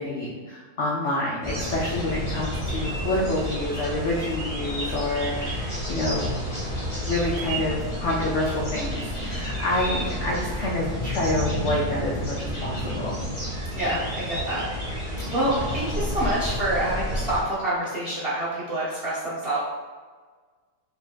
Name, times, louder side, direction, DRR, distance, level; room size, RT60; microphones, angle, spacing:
voice 1, 0.0-6.3 7.0-13.2, left 1 dB, 70° left, -5 dB, 0.7 m, -28 dB
sound 1, 1.4-17.4, equal, 25° left, 0.8 m, -30 dB
voice 2, 13.7-14.6 15.3-19.6, right 1 dB, 45° right, -9 dB, 0.8 m, -27 dB
5.1 x 2.7 x 2.3 m, 1.5 s
omnidirectional pair, 1.9 m